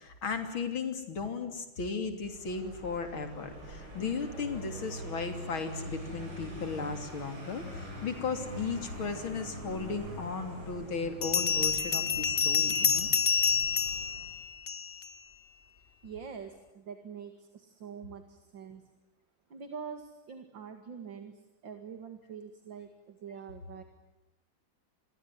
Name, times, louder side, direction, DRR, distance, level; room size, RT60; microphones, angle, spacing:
voice 1, 0.0-13.1, left 5 dB, 80° left, 7 dB, 3.9 m, -36 dB
Vehicle, 2.2-14.5, right 1 dB, 90° right, 8.9 m, -44 dB
Bell, 10.0-10.1 11.2-15.1, left 6 dB, 35° left, 1.1 m, -28 dB
voice 2, 16.0-18.9 19.5-23.8, right 6 dB, 65° right, 7 dB, 2.8 m, -45 dB
28.5 x 22.0 x 9.3 m, 1.0 s
omnidirectional pair, 2.2 m